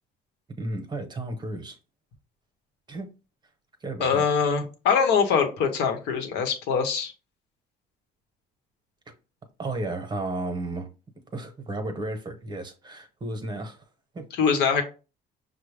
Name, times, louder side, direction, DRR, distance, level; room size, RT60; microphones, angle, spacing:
voice 1, 0.6-1.8 2.9-3.1 3.8-4.2 9.6-10.9 11.3-13.8 14.1-14.3, right 2 dB, 25° right, 1.0 m, -33 dB
voice 2, 4.0-7.1 14.4-14.8, left 6 dB, 80° left, 1.0 m, -23 dB
5.7 x 2.1 x 3.3 m
cardioid pair, 110°, 17 cm